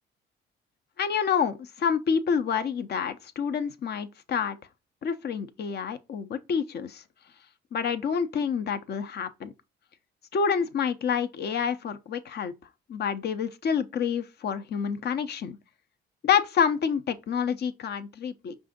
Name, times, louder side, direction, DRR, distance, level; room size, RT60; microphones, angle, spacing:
voice 1, 1.0-4.6 5.0-7.0 7.7-9.5 10.3-12.5 12.9-15.6 16.2-18.6, left 7 dB, 55° left, 0.7 m, -28 dB
5.4 x 2.6 x 3.7 m
cardioid pair, 90°, 20 cm